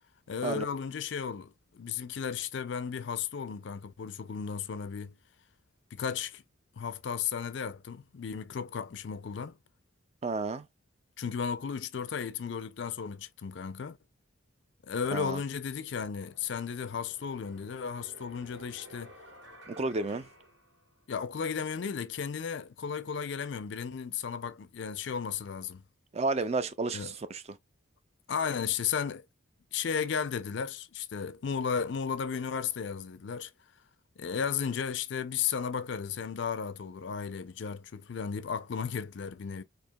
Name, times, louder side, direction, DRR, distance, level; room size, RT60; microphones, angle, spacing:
voice 1, 0.3-5.1 5.9-6.4 6.8-9.6 11.2-14.0 14.8-19.1 21.1-25.8 26.9-27.1 28.3-29.2 29.7-33.5 34.2-39.6, left 6 dB, 60° left, 0.4 m, -34 dB
voice 2, 10.2-10.6 15.1-15.4 19.7-20.3 26.1-27.6, right 3 dB, 30° right, 0.4 m, -31 dB
sound 1, 16.1-21.3, right 1 dB, 60° right, 2.5 m, -54 dB
4.5 x 2.8 x 2.2 m
head